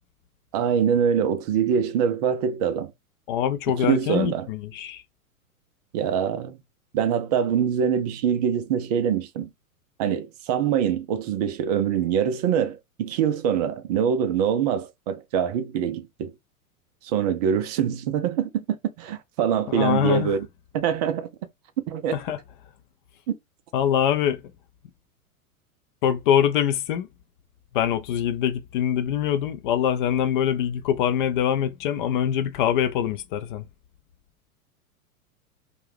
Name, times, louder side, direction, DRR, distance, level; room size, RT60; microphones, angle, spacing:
voice 1, 0.5-2.9 3.7-4.5 5.9-6.6 6.9-9.5 10.0-16.3 17.0-20.5 20.7-21.3 21.9-22.2, right 8 dB, 30° right, 0.4 m, -24 dB
voice 2, 3.3-5.0 19.7-20.3 22.1-22.4 23.7-24.4 26.0-27.1 27.7-33.7, left 9 dB, 35° left, 0.4 m, -24 dB
2.5 x 2.2 x 3.2 m
figure-of-eight pair, 100°, 44 cm